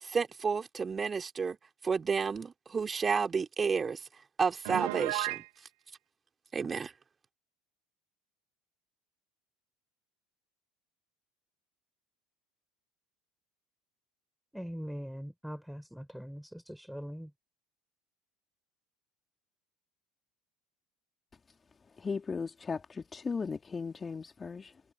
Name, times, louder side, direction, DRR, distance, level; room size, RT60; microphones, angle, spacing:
voice 1, 0.0-1.6 1.8-4.0 4.4-5.4 6.5-6.9, right 5 dB, 25° right, 3.4 m, -31 dB
Piano, 4.6-5.5, right 24 dB, 70° right, 1.5 m, -33 dB
voice 2, 14.5-17.3, equal, ahead, 4.7 m, -42 dB
voice 3, 22.0-24.8, left 5 dB, 25° left, 2.9 m, -37 dB
hypercardioid pair, 70°, 0 cm